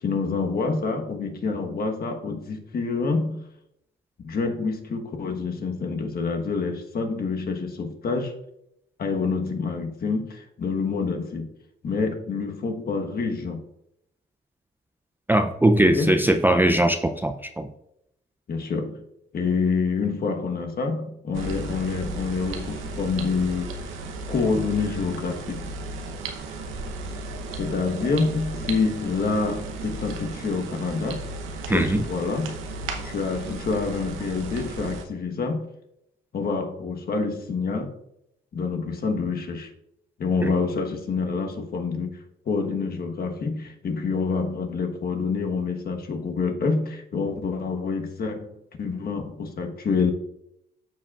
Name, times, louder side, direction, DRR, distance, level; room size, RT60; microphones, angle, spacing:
voice 1, 0.0-3.4 4.2-8.3 9.0-11.5 11.8-13.6 15.8-16.3 18.5-19.0 19.3-23.8 24.3-25.7 27.5-31.2 31.7-32.6 33.0-35.7 36.3-37.9 38.5-39.7 40.2-42.2 42.4-48.5 48.8-50.1, left 4 dB, 50° left, 1.2 m, -27 dB
voice 2, 15.3-17.7 31.7-32.0 40.4-40.5, right 1 dB, 10° right, 0.4 m, -20 dB
sound 1, 21.3-35.0, right 2 dB, 90° right, 0.9 m, -35 dB
13.5 x 4.9 x 2.4 m
cardioid pair, 90°, 20 cm